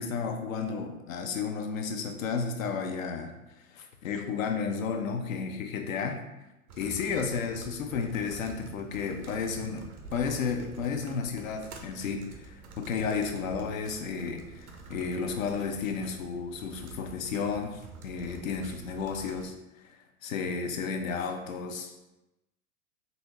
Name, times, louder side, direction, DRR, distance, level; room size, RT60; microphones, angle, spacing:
voice 1, 0.0-3.4 3.7-6.2 6.8-19.5 20.2-22.0, left 5 dB, 65° left, 5 dB, 0.7 m, -32 dB
sound 1, 6.7-19.5, right 3 dB, 75° right, 0.8 m, -48 dB
4.1 x 2.6 x 3.0 m, 0.96 s
figure-of-eight pair, 95°, 44 cm